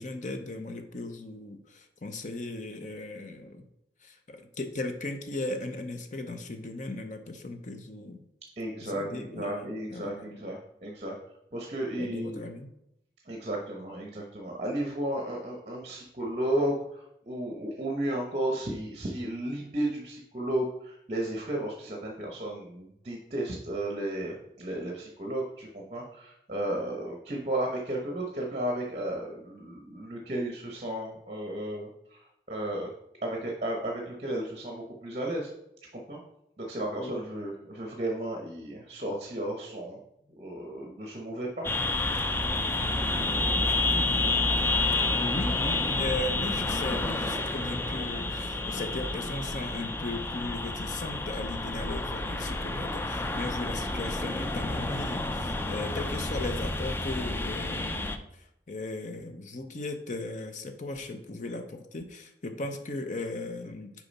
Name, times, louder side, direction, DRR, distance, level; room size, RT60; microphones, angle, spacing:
voice 1, 0.0-3.7 4.0-8.2 8.8-10.4 12.0-12.7 37.0-37.1 45.1-64.1, left 2 dB, 45° left, 7 dB, 0.7 m, -37 dB
voice 2, 8.6-11.2 11.5-12.4 13.3-32.9 33.2-35.5 35.9-36.2 36.6-40.0 40.4-41.7 53.3-53.5, right 1 dB, 40° right, 0 dB, 1.0 m, -33 dB
sound 1, 41.6-58.2, left 2 dB, 15° left, 0.4 m, -29 dB
6.8 x 4.8 x 4.1 m, 0.80 s
head